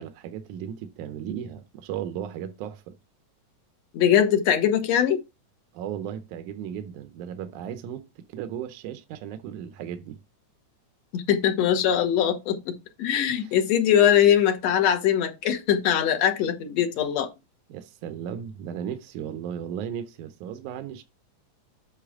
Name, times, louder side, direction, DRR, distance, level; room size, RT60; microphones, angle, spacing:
voice 1, 0.0-3.0 5.7-10.2 13.3-13.6 17.7-21.0, right 9 dB, 90° right, 2.2 m, -36 dB
voice 2, 3.9-5.2 11.1-17.3, left 9 dB, 65° left, 2.1 m, -22 dB
8.3 x 5.6 x 3.6 m
omnidirectional pair, 3.5 m